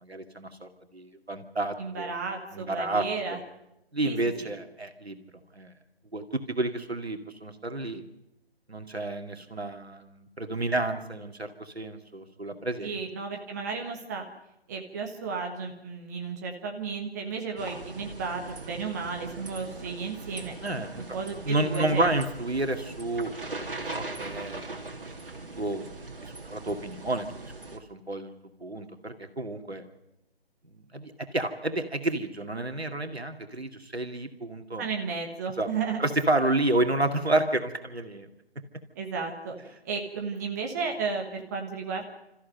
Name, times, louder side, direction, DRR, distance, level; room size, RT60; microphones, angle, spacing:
voice 1, 0.0-2.1 2.5-3.4 3.9-5.3 5.6-5.7 6.1-8.0 8.7-13.0 20.6-21.0 21.4-24.7 25.6-25.9 26.2-28.3 28.6-29.8 30.7-34.9 35.6-35.7 36.0-38.3, right 2 dB, 80° right, 6 dB, 2.3 m, -30 dB
voice 2, 1.8-3.4 4.0-4.5 12.8-14.3 14.7-20.5 21.0-22.1 34.8-36.0 38.9-42.1, right 5 dB, 15° right, 2 dB, 1.3 m, -33 dB
sound 1, 17.6-27.8, right 2 dB, 60° right, 2.8 m, -40 dB
29.0 x 14.5 x 7.8 m, 0.88 s
figure-of-eight pair, 150°, 31 cm